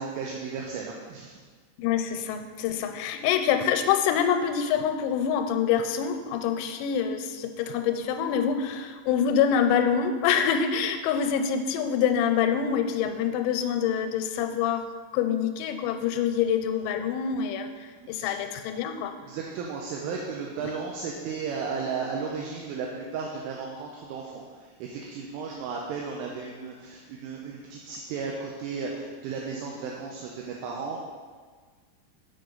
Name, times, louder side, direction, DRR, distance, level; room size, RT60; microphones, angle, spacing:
voice 1, 0.0-1.4 17.9-18.3 19.2-31.0, right 5 dB, 80° right, -1 dB, 3.0 m, -34 dB
voice 2, 1.8-14.8 15.1-19.1, left 8 dB, 90° left, 7 dB, 3.3 m, -26 dB
7.6 x 5.8 x 3.9 m, 1.5 s
omnidirectional pair, 5.9 m